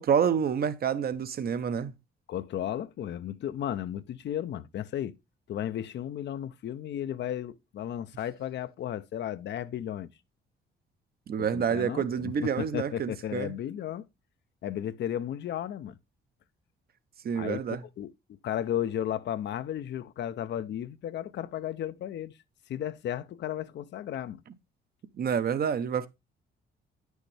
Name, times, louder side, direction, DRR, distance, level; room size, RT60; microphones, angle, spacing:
voice 1, 0.0-1.9 11.3-13.5 17.2-17.8 25.2-26.1, right 7 dB, 50° right, 0.8 m, -28 dB
voice 2, 2.3-5.2 5.5-10.1 11.4-14.1 14.6-15.9 17.3-18.1 18.4-22.3 22.7-24.4, left 10 dB, 65° left, 0.6 m, -34 dB
8.8 x 6.3 x 3.3 m
cardioid pair, 90°, 20 cm